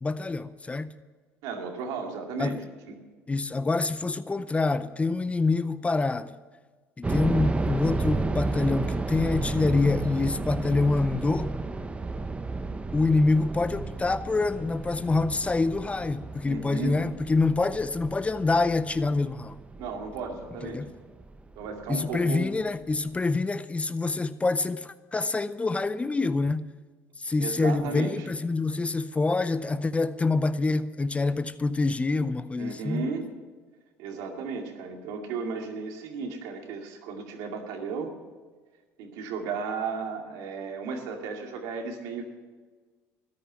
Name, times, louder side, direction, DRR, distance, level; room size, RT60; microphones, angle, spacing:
voice 1, 0.0-1.0 2.4-2.6 3.3-6.4 7.0-11.6 12.9-19.6 20.7-20.9 21.9-26.7 27.2-33.1, left 3 dB, 20° left, 0.6 m, -26 dB
voice 2, 1.4-2.6 2.9-3.0 16.4-17.0 19.8-20.9 21.6-22.5 27.4-28.3 32.6-33.3 34.0-38.1 39.0-42.3, right 5 dB, 75° right, 2.3 m, -34 dB
sound 1, 7.0-21.9 22.2-22.3 22.9-23.2, right 3 dB, 20° right, 0.9 m, -33 dB
13.5 x 10.5 x 7.4 m
supercardioid pair, 80°, 6 cm